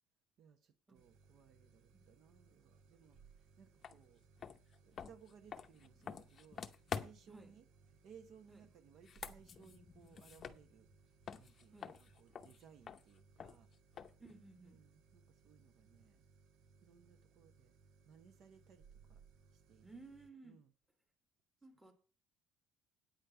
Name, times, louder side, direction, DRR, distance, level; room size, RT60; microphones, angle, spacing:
voice 1, 0.4-4.2 4.8-6.6 6.9-7.7 8.0-10.9 11.4-13.7 14.6-16.2 16.8-17.7 18.0-19.2 19.5-20.0 20.4-20.7, right 7 dB, 50° right, 1.1 m, -63 dB
sound 1, 0.9-20.3, right 5 dB, 70° right, 1.0 m, -67 dB
sound 2, 3.8-4.0 4.4-7.4 8.9-11.0 11.3-14.3, left 7 dB, 30° left, 0.7 m, -48 dB
voice 2, 14.2-14.9 19.8-20.6 21.6-21.9, right 3 dB, 5° right, 1.5 m, -57 dB
9.1 x 5.3 x 8.0 m
cardioid pair, 160°, 0 cm